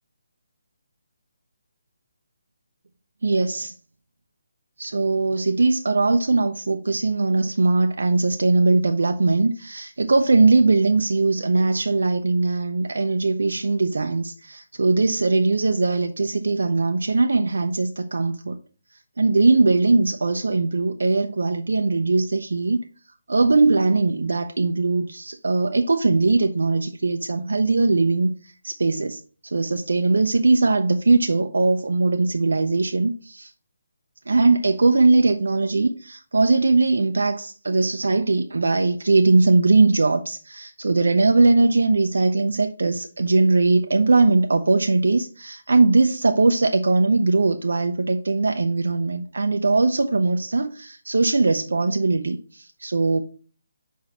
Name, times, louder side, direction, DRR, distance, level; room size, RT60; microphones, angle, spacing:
voice 1, 3.2-3.7 4.8-18.6 19.2-22.8 23.3-33.5 34.3-53.2, right 3 dB, 75° right, 0.5 m, -20 dB
5.8 x 4.7 x 4.4 m
figure-of-eight pair, 150°, 0 cm